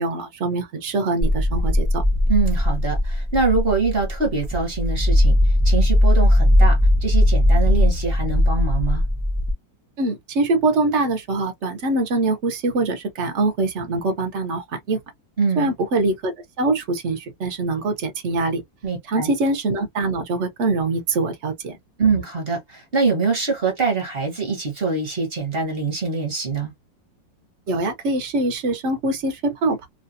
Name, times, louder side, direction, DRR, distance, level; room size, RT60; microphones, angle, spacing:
voice 1, 0.0-2.0 10.0-15.0 15.6-18.6 19.1-21.8 27.7-29.9, right 2 dB, 60° right, 0.7 m, -23 dB
sound 1, 1.2-9.5, left 1 dB, 10° left, 0.5 m, -18 dB
voice 2, 2.3-5.4 5.6-9.0 15.4-15.7 18.8-19.3 22.0-26.7, right 4 dB, 35° right, 1.1 m, -24 dB
3.2 x 2.4 x 2.6 m
omnidirectional pair, 2.1 m